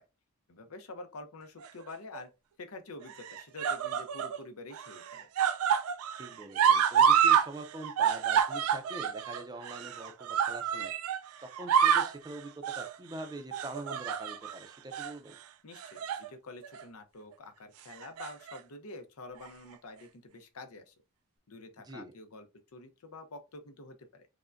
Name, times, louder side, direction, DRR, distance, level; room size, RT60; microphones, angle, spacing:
voice 1, 0.5-2.3 2.6-5.3 15.6-20.9 21.5-24.3, left 2 dB, 85° left, 0.7 m, -47 dB
sound 1, 1.6-2.2 3.1-4.4 4.7-7.5 7.7-11.2 11.5-12.2 12.6-12.9 13.5-14.5 14.9-15.1 15.8-16.3 16.6-16.8 17.9-18.6 19.5-19.6, right 8 dB, 80° right, 0.3 m, -28 dB
voice 2, 6.2-10.9 11.4-15.4 21.8-22.1, right 1 dB, 20° right, 0.5 m, -44 dB
4.9 x 2.2 x 2.5 m
head